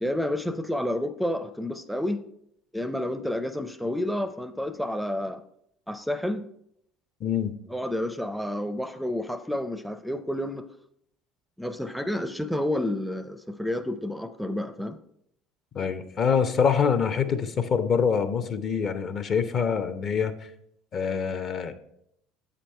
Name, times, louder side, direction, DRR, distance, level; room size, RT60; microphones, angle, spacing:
voice 1, 0.0-2.2 2.7-5.4 5.9-6.4 7.7-10.7 11.6-15.0, left 1 dB, ahead, 11 dB, 0.5 m, -30 dB
voice 2, 7.2-7.5 15.7-20.3 20.9-21.7, left 6 dB, 45° left, 10 dB, 0.7 m, -25 dB
7.6 x 5.1 x 4.4 m, 0.74 s
hypercardioid pair, 80°, 0 cm